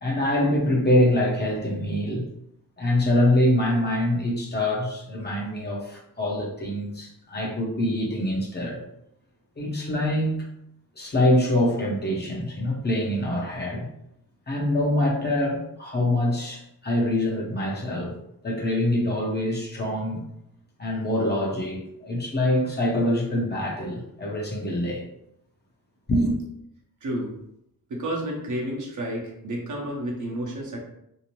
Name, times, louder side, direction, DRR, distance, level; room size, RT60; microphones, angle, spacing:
voice 1, 0.0-2.3 2.8-8.8 9.6-10.5 11.0-13.9 14.5-18.2 18.4-20.2 20.8-25.0 26.1-26.3, left 1 dB, 30° left, -2 dB, 0.7 m, -24 dB
voice 2, 27.0-27.3 27.9-30.8, right 1 dB, 55° right, -2 dB, 0.8 m, -30 dB
2.7 x 2.0 x 3.0 m, 0.78 s
cardioid pair, 90°, 36 cm